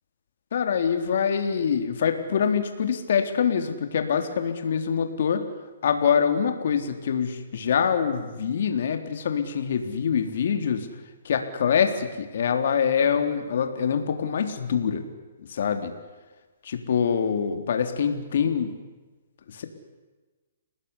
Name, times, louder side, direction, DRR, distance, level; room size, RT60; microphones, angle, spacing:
voice 1, 0.5-5.4 5.8-10.9 11.2-15.0 15.4-15.9 16.6-18.8 19.5-19.7, left 7 dB, 65° left, 7 dB, 3.7 m, -25 dB
29.5 x 19.5 x 9.9 m, 1.2 s
hypercardioid pair, 155°, 0 cm